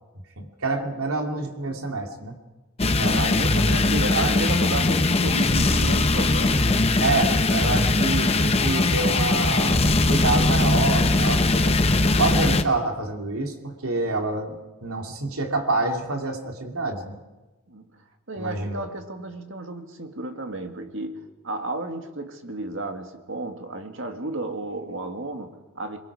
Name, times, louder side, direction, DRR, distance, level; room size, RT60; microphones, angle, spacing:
voice 1, 0.4-2.3 3.0-3.5 4.1-4.5 7.0-11.8 12.2-17.2 18.4-18.9, right 3 dB, 80° right, 3 dB, 2.7 m, -27 dB
sound 1, 2.8-12.6, left 2 dB, 25° left, 0.8 m, -20 dB
voice 2, 3.2-6.9 17.7-17.9 18.3-26.0, right 2 dB, 55° right, 6 dB, 2.0 m, -33 dB
26.5 x 22.5 x 4.9 m, 1.1 s
head